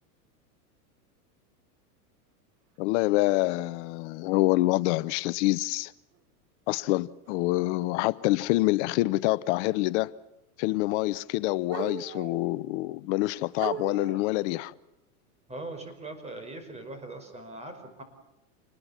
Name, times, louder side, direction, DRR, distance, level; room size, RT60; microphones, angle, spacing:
voice 1, 2.8-5.9 6.7-10.2 10.6-14.7, left 19 dB, 50° left, 0.8 m, -26 dB
sound 1, 4.6-4.7 6.1-6.2 7.3-7.5 10.0-10.1 11.7-12.5 13.1-13.2 13.6-14.4, right 9 dB, 30° right, 1.6 m, -38 dB
voice 2, 15.5-18.0, right 2 dB, 15° right, 5.5 m, -41 dB
28.0 x 20.5 x 7.3 m
supercardioid pair, 135°, 45 cm